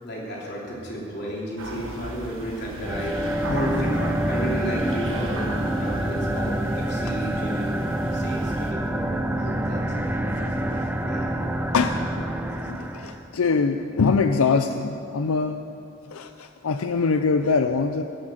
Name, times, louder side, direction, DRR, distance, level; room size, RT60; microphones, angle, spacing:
voice 1, 0.0-10.1 10.9-11.3, equal, 50° left, -4 dB, 3.4 m, -33 dB
sound 1, 1.6-8.7, right 1 dB, 65° right, 1.4 m, -37 dB
sound 2, 2.5-7.6, left 1 dB, 70° left, 3.0 m, -45 dB
sound 3, 2.8-13.3, right 1 dB, 10° right, 0.6 m, -27 dB
voice 2, 10.3-11.3 11.7-12.3 12.6-15.7 16.1-18.0, left 4 dB, 90° left, 8 dB, 0.5 m, -24 dB
18.5 x 7.6 x 7.7 m, 2.7 s
head